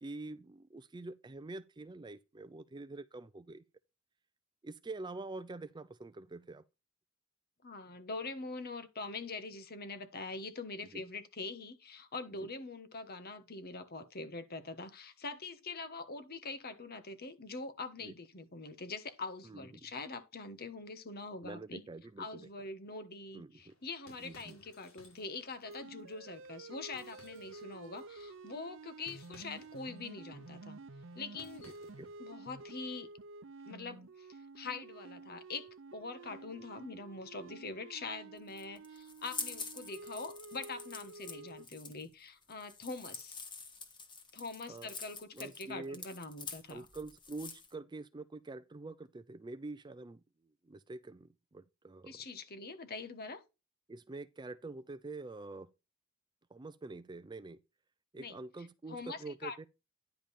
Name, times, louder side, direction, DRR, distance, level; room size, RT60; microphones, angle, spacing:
voice 1, 0.0-3.6 4.6-6.6 10.9-11.0 12.4-12.5 18.0-18.1 19.4-19.7 21.4-22.5 23.3-23.7 24.2-24.6 31.7-32.1 44.7-44.9 45.3-46.0 46.7-50.2 50.6-52.2 53.9-55.7 56.5-57.6 58.1-59.7, right 2 dB, 20° right, 0.4 m, -46 dB
voice 2, 7.6-21.8 22.2-30.8 31.1-31.7 32.2-33.1 33.7-43.4 44.3-46.9 52.0-53.4 58.2-58.4 58.9-59.7, left 3 dB, 50° left, 1.2 m, -44 dB
sound 1, 23.6-32.2, left 2 dB, 80° left, 5.1 m, -63 dB
sound 2, 25.6-41.6, right 3 dB, 65° right, 0.7 m, -51 dB
sound 3, 38.4-47.7, left 4 dB, 25° left, 1.4 m, -46 dB
10.5 x 5.2 x 4.2 m
head